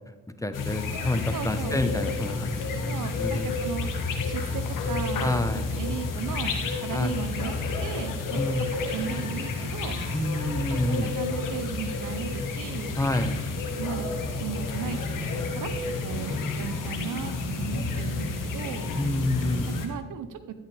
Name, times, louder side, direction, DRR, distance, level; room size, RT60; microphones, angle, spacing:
voice 1, 0.4-3.5 5.2-5.7 6.9-7.1 8.3-8.7 10.1-11.1 13.0-13.4 19.0-19.7, left 1 dB, 10° left, 8 dB, 1.0 m, -28 dB
sound 1, 0.5-19.9, left 3 dB, 65° left, 1.5 m, -30 dB
voice 2, 1.3-1.8 2.9-3.9 4.2-5.3 5.7-7.5 7.8-10.0 10.7-13.0 13.8-14.1 14.4-15.7 16.0-18.9 19.7-20.5, right 8 dB, 60° right, 11 dB, 0.9 m, -36 dB
13.0 x 8.3 x 3.4 m, 1.2 s
hypercardioid pair, 40°, 34 cm